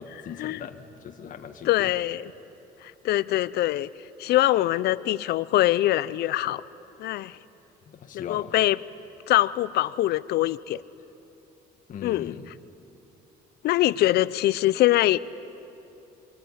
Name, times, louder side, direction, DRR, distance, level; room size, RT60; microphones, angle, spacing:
voice 1, 0.0-1.9 7.9-8.5 11.9-12.5, left 7 dB, 50° left, 5 dB, 1.8 m, -39 dB
voice 2, 1.7-2.2 2.8-3.9 4.2-6.6 7.0-7.4 8.1-8.8 9.3-10.8 12.0-12.3 13.6-15.2, left 15 dB, 70° left, 18 dB, 0.7 m, -23 dB
25.0 x 24.5 x 9.8 m, 2.8 s
cardioid pair, 110°, 17 cm